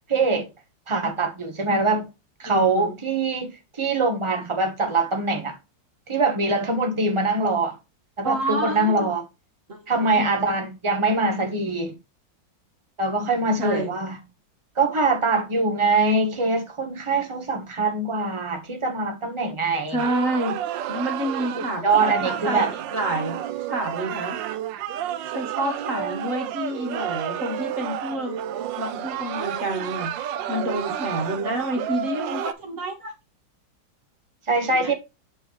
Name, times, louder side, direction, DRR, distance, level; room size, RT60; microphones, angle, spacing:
voice 1, 0.1-0.5 0.9-2.1 2.4-5.6 6.1-7.7 8.2-9.2 9.9-11.9 13.0-14.2 14.8-20.0 21.5-22.7 25.9-26.1 34.5-34.9, right 3 dB, 20° right, 1.0 m, -23 dB
voice 2, 2.4-2.9 8.2-9.1 9.7-10.2 13.6-13.9 19.9-23.4 23.7-24.4 25.3-28.3 28.8-33.1 34.7-34.9, right 1 dB, 45° right, 2.0 m, -29 dB
sound 1, 20.0-32.5, right 10 dB, 80° right, 1.3 m, -31 dB
8.1 x 4.4 x 3.2 m
omnidirectional pair, 2.0 m